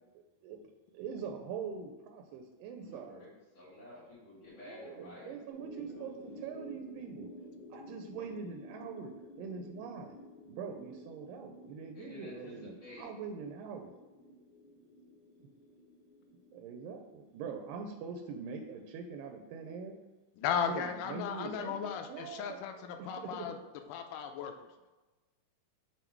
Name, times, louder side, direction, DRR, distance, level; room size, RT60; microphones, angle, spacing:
voice 1, 0.1-0.6 0.9-3.2 4.6-7.3 7.7-9.1 9.4-10.2 10.5-13.9 16.5-19.9 20.7-23.6, right 5 dB, 85° right, 4 dB, 2.3 m, -43 dB
voice 2, 2.8-5.4 5.8-6.0 11.9-13.0, left 2 dB, 55° left, -10 dB, 2.7 m, -51 dB
sound 1, 5.5-16.9, left 1 dB, 35° left, 1.0 m, -52 dB
voice 3, 20.4-23.5 23.9-24.5, left 7 dB, 80° left, 6 dB, 2.1 m, -36 dB
7.1 x 3.7 x 4.5 m, 1.2 s
omnidirectional pair, 3.9 m